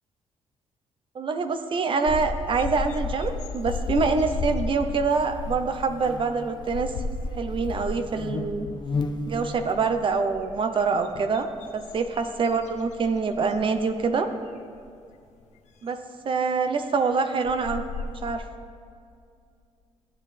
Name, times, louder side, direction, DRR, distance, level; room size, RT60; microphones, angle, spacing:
voice 1, 1.1-6.9 7.4-8.7 9.3-11.5 11.7-14.3 15.8-17.8 18.2-18.4, right 4 dB, 45° right, 8 dB, 0.7 m, -25 dB
Buzz, 2.0-14.2, left 3 dB, 40° left, 0.6 m, -39 dB
sound 1, 2.1-8.1 8.4-8.8 9.2-10.2 10.8-13.1 13.5-13.7 14.7-14.8 17.0-17.1 17.4-18.3, left 3 dB, 85° left, 0.7 m, -33 dB
15.0 x 9.0 x 3.3 m, 2.4 s
cardioid pair, 100°, 12 cm